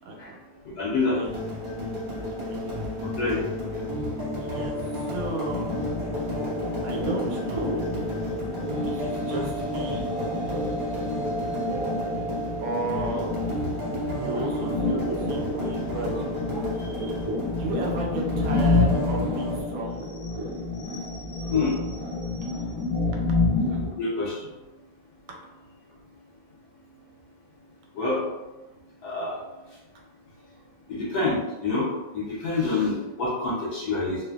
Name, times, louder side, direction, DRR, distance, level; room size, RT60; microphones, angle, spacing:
voice 1, 0.1-0.4 1.1-1.3 2.2-2.8 4.4-4.8 5.0-5.7 6.8-7.8 8.8-10.1 12.6-13.3 14.2-16.2 17.5-20.1 22.4-22.5 25.3-25.4, right 2 dB, 85° right, 1 dB, 1.4 m, -34 dB
voice 2, 0.8-1.2 3.2-3.4 20.9-21.7 23.8-24.3 28.0-28.2 29.0-29.3 30.9-31.4 31.6-31.9 32.1-34.2, left 3 dB, 70° left, -6 dB, 1.0 m, -26 dB
sound 1, 1.2-19.6, left 1 dB, 40° right, 0.7 m, -32 dB
sound 2, 5.5-23.9, left 2 dB, 15° left, 0.9 m, -29 dB
sound 3, 8.3-16.8, right 3 dB, 70° right, 1.0 m, -39 dB
3.3 x 2.1 x 2.2 m, 1.1 s
omnidirectional pair, 2.2 m